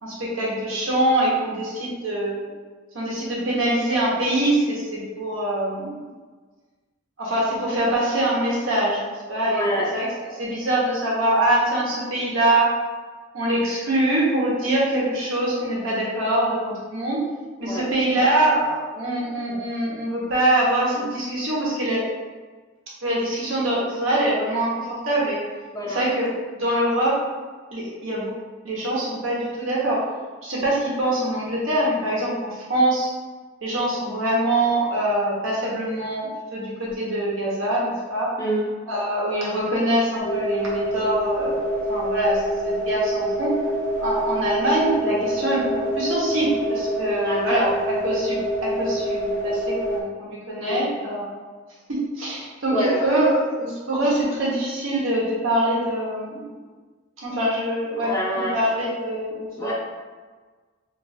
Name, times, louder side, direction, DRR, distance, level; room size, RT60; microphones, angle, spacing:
voice 1, 0.0-2.5 2.9-6.1 7.2-10.1 10.3-12.7 13.3-17.2 17.6-22.0 23.0-25.4 25.9-26.2 26.5-27.1 27.7-28.3 28.6-30.0 30.4-33.1 33.6-38.3 38.9-43.5 44.0-51.3 51.9-56.5 57.2-59.7, right 1 dB, 85° right, -6 dB, 1.1 m, -24 dB
voice 2, 9.5-9.9 17.6-17.9 25.7-26.0 38.4-38.8 47.2-47.7 50.6-50.9 52.7-53.2 58.0-58.6 59.6-59.7, left 1 dB, 15° left, -4 dB, 0.4 m, -27 dB
sound 1, 40.2-50.0, equal, 65° left, 0.6 m, -26 dB
2.6 x 2.4 x 4.2 m, 1.4 s
head